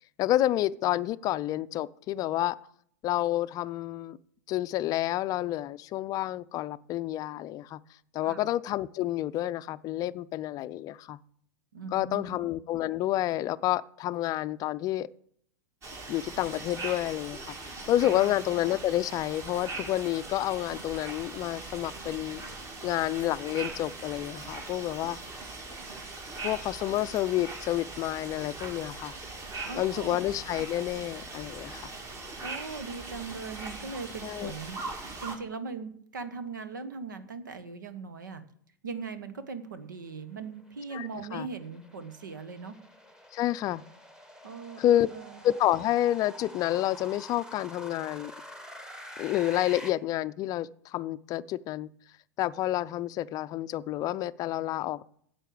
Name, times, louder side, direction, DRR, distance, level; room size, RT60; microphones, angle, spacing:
voice 1, 0.2-2.6 3.0-4.2 4.5-7.8 8.1-11.2 11.9-15.1 16.1-17.5 17.9-22.4 22.8-25.2 26.4-29.1 29.8-31.9 34.2-34.5 40.9-41.5 43.3-43.8 44.8-45.1 45.4-48.3 49.2-51.9 52.4-55.0, left 13 dB, 40° left, 0.4 m, -29 dB
voice 2, 11.7-12.4 18.0-18.4 29.6-30.2 32.4-34.8 35.2-38.4 38.8-42.8 44.4-45.5, right 4 dB, 85° right, 1.2 m, -40 dB
sound 1, 15.8-35.4, right 3 dB, 30° right, 2.5 m, -41 dB
sound 2, 40.3-49.9, equal, 5° right, 1.4 m, -47 dB
10.0 x 7.6 x 6.8 m
hypercardioid pair, 100°, 10 cm